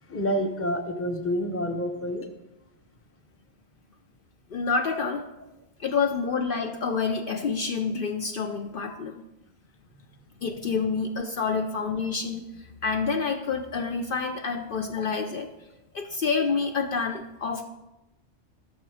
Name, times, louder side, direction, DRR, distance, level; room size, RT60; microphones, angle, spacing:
voice 1, 0.1-2.3, equal, 15° left, 5 dB, 0.8 m, -28 dB
voice 2, 4.5-5.2 5.8-9.2 10.4-15.5 15.9-17.7, left 5 dB, 60° left, 5 dB, 0.7 m, -28 dB
12.0 x 6.9 x 4.9 m, 1.0 s
omnidirectional pair, 1.1 m